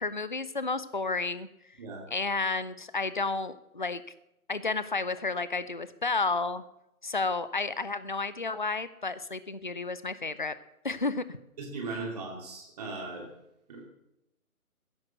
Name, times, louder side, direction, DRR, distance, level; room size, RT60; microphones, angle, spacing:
voice 1, 0.0-1.5 2.1-4.0 4.5-6.6 7.0-10.5 10.8-11.4, left 3 dB, 35° left, 15 dB, 0.5 m, -31 dB
voice 2, 11.6-13.3 13.7-13.8, right 3 dB, 25° right, 0 dB, 2.6 m, -38 dB
15.0 x 10.5 x 6.7 m, 0.85 s
figure-of-eight pair, 150°, 45 cm